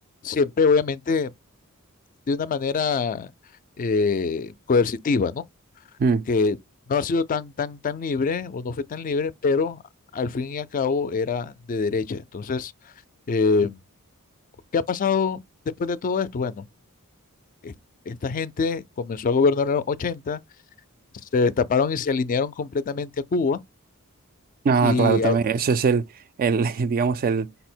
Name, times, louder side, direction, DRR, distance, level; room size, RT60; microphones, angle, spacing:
voice 1, 0.2-1.3 2.3-3.3 3.8-5.4 6.3-6.6 6.9-9.8 10.1-12.7 13.3-13.8 14.7-15.4 15.8-16.7 17.6-17.7 18.1-20.4 21.3-23.6 24.8-25.4, left 4 dB, 40° left, 0.3 m, -24 dB
voice 2, 24.6-26.1 26.4-27.5, right 5 dB, 40° right, 0.3 m, -21 dB
5.3 x 2.0 x 4.3 m
head